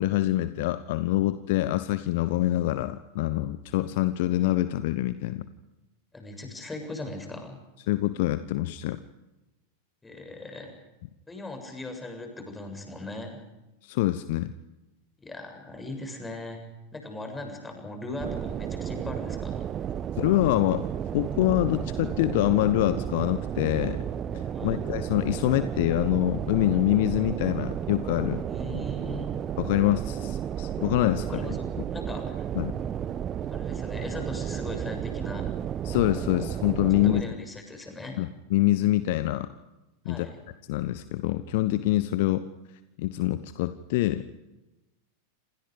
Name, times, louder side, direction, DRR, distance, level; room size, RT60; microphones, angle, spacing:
voice 1, 0.0-5.5 7.9-9.0 13.8-14.5 20.2-20.8 21.1-24.0 24.3-28.4 29.6-31.4 32.5-32.8 35.8-37.3 38.2-39.5 40.0-40.3 40.7-42.4 43.0-44.2, left 16 dB, 50° left, 13 dB, 1.0 m, -25 dB
voice 2, 6.1-7.6 10.0-10.7 11.3-13.4 15.2-16.6 16.9-19.6 24.5-24.8 28.5-29.3 31.3-31.6 31.9-32.5 33.5-35.5 37.0-38.2 40.1-40.4, left 2 dB, 10° left, 4 dB, 7.3 m, -39 dB
sound 1, 18.2-37.2, right 9 dB, 25° right, 1.1 m, -32 dB
29.0 x 27.5 x 5.2 m, 1.0 s
figure-of-eight pair, 90°, 0 cm